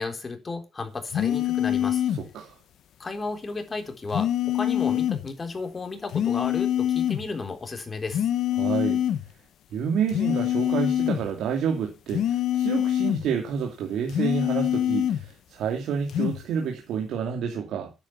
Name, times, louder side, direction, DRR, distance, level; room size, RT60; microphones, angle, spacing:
voice 1, 0.0-2.0 3.0-8.3, left 3 dB, 30° left, 3.8 m, -33 dB
sound 1, 1.1-2.3 4.1-5.3 6.1-7.3 8.1-9.3 10.1-11.3 12.1-13.3 14.1-15.3 16.1-16.4, left 11 dB, 75° left, 1.2 m, -25 dB
voice 2, 2.2-2.6 8.6-9.0 9.7-17.9, right 7 dB, 80° right, 2.6 m, -29 dB
10.0 x 9.0 x 7.2 m
cardioid pair, 90°, 0 cm